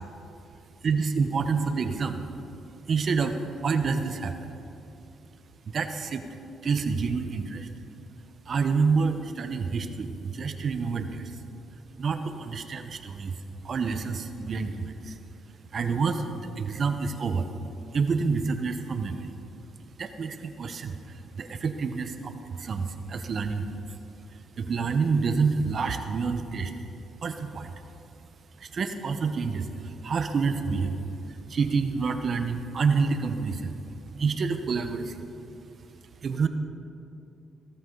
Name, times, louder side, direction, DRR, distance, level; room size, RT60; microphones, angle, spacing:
voice 1, 0.8-2.2 2.9-4.5 5.7-6.2 6.6-7.7 8.5-11.4 12.0-13.4 13.6-15.2 15.7-17.5 17.9-19.3 20.0-23.8 24.3-26.7 27.2-27.7 28.6-31.0 31.3-33.8 34.2-35.2 36.2-36.5, right 5 dB, 50° right, 8 dB, 0.9 m, -28 dB
16.0 x 13.0 x 3.9 m, 2.7 s
cardioid pair, 90°, 0 cm